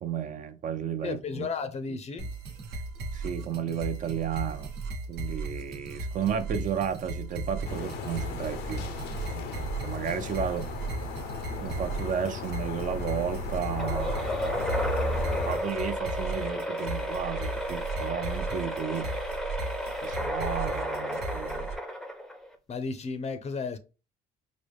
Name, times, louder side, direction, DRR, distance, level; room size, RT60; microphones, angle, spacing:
voice 1, 0.0-1.5 3.1-4.7 5.1-8.9 9.3-10.7 11.6-14.9 15.1-19.1 20.0-21.7, right 8 dB, 50° right, 0.6 m, -33 dB
voice 2, 1.0-2.3 22.7-23.8, left 4 dB, 40° left, 0.6 m, -33 dB
sound 1, 2.2-21.8, right 3 dB, 80° right, 1.1 m, -36 dB
sound 2, 7.6-15.6, left 4 dB, 75° left, 0.7 m, -35 dB
sound 3, 13.8-22.6, equal, ahead, 0.6 m, -33 dB
4.9 x 2.1 x 3.3 m
cardioid pair, 110°, 17 cm